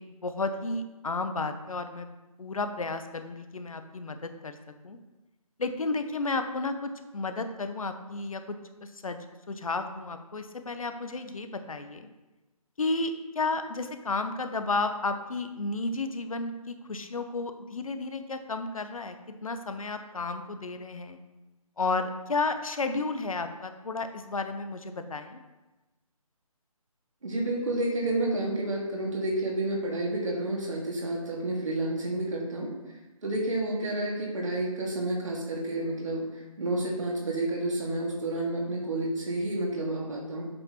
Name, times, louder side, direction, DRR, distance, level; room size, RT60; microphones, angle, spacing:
voice 1, 0.0-2.1 2.4-4.6 4.8-5.0 5.6-12.1 12.8-19.2 19.4-21.2 21.8-25.4, left 3 dB, 65° left, 8 dB, 0.8 m, -32 dB
voice 2, 27.2-32.7 33.2-40.4, right 1 dB, 60° right, -1 dB, 2.2 m, -30 dB
7.7 x 5.8 x 3.0 m, 1.1 s
figure-of-eight pair, 150°, 19 cm